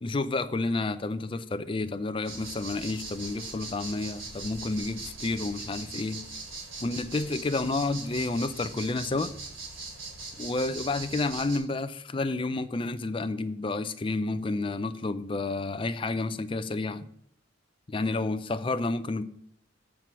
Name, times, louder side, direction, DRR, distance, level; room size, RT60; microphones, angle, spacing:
voice 1, 0.0-6.2 6.8-9.3 10.4-17.1 17.9-19.2, left 3 dB, 25° left, 0.4 m, -30 dB
sound 1, 2.2-11.6, right 3 dB, 85° right, 2.9 m, -41 dB
7.5 x 4.5 x 6.9 m
head